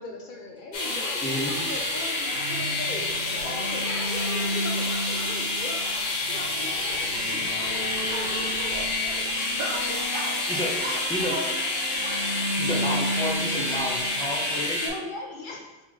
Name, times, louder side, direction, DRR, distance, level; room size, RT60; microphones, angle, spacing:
voice 1, 0.0-5.9 6.3-7.5 12.6-13.1 14.8-15.8, left 2 dB, 60° left, 1 dB, 0.5 m, -39 dB
sound 1, 0.7-14.9, left 2 dB, 80° left, 1.5 m, -28 dB
voice 2, 1.2-1.6 10.5-10.7 11.1-11.3 12.6-14.8, equal, 5° left, -4 dB, 0.7 m, -31 dB
sound 2, 2.3-14.8, equal, 40° left, 1.6 m, -35 dB
sound 3, 3.1-3.2 3.7-13.1, right 3 dB, 90° right, 1.1 m, -47 dB
voice 3, 7.5-10.4 10.8-12.3, right 2 dB, 60° right, 0 dB, 0.6 m, -38 dB
4.2 x 3.9 x 3.1 m, 1.1 s
omnidirectional pair, 1.3 m